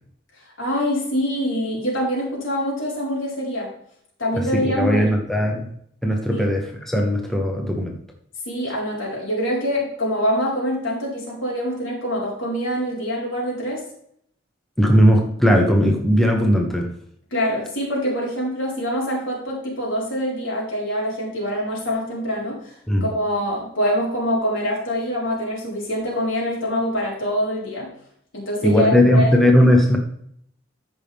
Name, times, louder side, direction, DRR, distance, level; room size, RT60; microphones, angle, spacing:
voice 1, 0.6-3.7 4.2-5.1 6.3-6.5 8.5-13.8 17.3-22.7 23.0-27.9 28.3-29.3, equal, 80° left, -4 dB, 4.4 m, -25 dB
voice 2, 4.4-5.7 6.0-7.9 14.8-16.9 22.9-23.1 28.6-30.0, equal, ahead, 1 dB, 1.0 m, -18 dB
14.0 x 5.6 x 3.5 m, 0.68 s
head